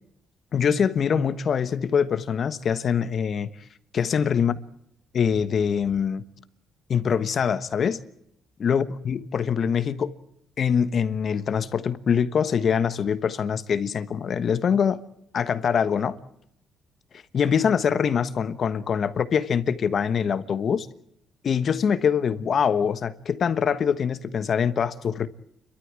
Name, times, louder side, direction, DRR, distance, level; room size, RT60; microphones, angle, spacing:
voice 1, 0.5-3.5 3.9-4.5 5.1-6.2 6.9-8.0 8.6-10.1 10.6-15.0 15.3-16.2 17.3-20.9 21.4-25.3, left 7 dB, 55° left, 1.3 m, -24 dB
30.0 x 13.0 x 8.7 m
cardioid pair, 90°, 0 cm